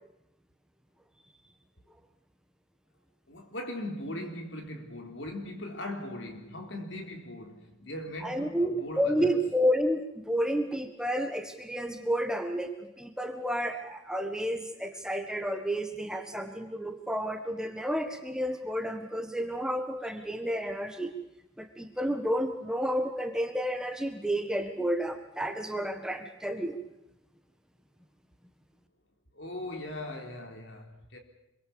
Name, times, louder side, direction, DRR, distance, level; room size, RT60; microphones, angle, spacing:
voice 1, 3.3-9.4 29.3-31.2, left 1 dB, 70° left, 4.0 m, -39 dB
voice 2, 8.2-21.1 21.6-26.8, equal, 5° right, 1.6 m, -31 dB
26.5 x 23.0 x 7.1 m
head